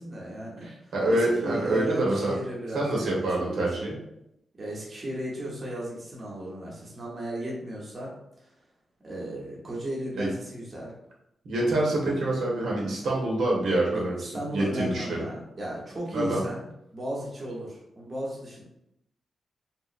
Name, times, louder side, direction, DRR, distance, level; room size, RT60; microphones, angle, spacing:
voice 1, 0.0-3.9 4.6-8.1 8.4-8.5 9.0-10.9 11.6-11.8 13.9-18.6, right 1 dB, 25° right, -4 dB, 0.8 m, -36 dB
voice 2, 0.6-2.3 2.7-4.0 10.2-10.3 11.4-14.2 14.5-15.3 16.1-16.4, right 1 dB, 85° right, -3 dB, 1.1 m, -26 dB
3.6 x 2.8 x 2.4 m, 0.80 s
wide cardioid pair, 180°, 0 cm